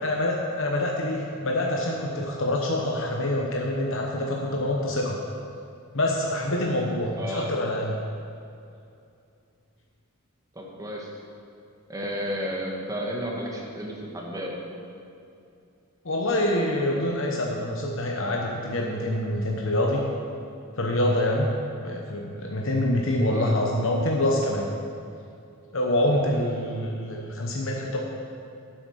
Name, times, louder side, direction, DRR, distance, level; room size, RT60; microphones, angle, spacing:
voice 1, 0.0-5.2 5.9-8.0 16.0-20.0 20.7-21.5 21.8-24.7 25.7-28.0, left 1 dB, 60° left, -1 dB, 1.0 m, -26 dB
voice 2, 7.2-7.5 10.5-11.1 11.9-14.6 23.2-23.5, equal, 15° right, -2 dB, 1.6 m, -32 dB
10.5 x 8.0 x 6.4 m, 2.6 s
head